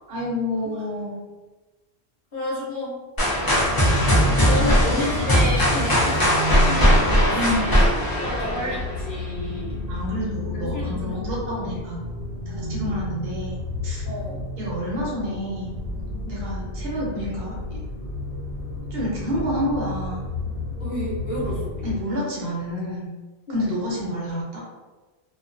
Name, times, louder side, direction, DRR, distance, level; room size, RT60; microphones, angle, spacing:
voice 1, 0.1-1.1 7.3-7.8 9.9-12.0 12.5-13.6 13.8-14.0 14.6-15.8 16.2-17.5 18.9-20.2 21.8-23.1 23.5-24.6, equal, 65° right, -5 dB, 0.9 m, -28 dB
voice 2, 2.3-3.0 4.0-7.8 8.2-9.8 10.7-11.2 11.5-11.6 14.0-14.4 20.8-21.9 23.5-23.8, left 1 dB, 55° left, -7 dB, 1.0 m, -31 dB
sound 1, 3.2-9.1, equal, 30° left, 0.5 m, -19 dB
sound 2, 3.6-22.0, left 2 dB, 90° left, 0.9 m, -32 dB
2.3 x 2.2 x 2.5 m, 1.2 s
omnidirectional pair, 1.1 m